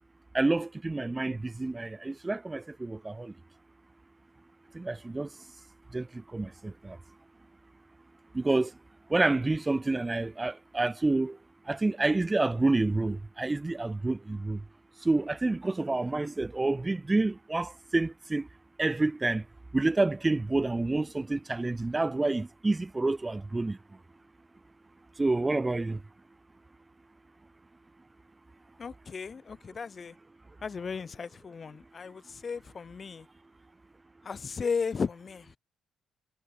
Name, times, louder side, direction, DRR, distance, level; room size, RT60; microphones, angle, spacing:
voice 1, 0.3-3.3 4.7-5.4 5.9-7.0 8.3-8.8 9.1-11.4 11.7-14.6 15.0-18.5 18.8-19.5 19.7-23.8 25.2-26.0, right 2 dB, 20° right, 0.4 m, -28 dB
voice 2, 28.8-30.2 30.6-33.3 34.2-35.6, left 5 dB, 40° left, 1.8 m, -35 dB
cardioid pair, 90°, 0 cm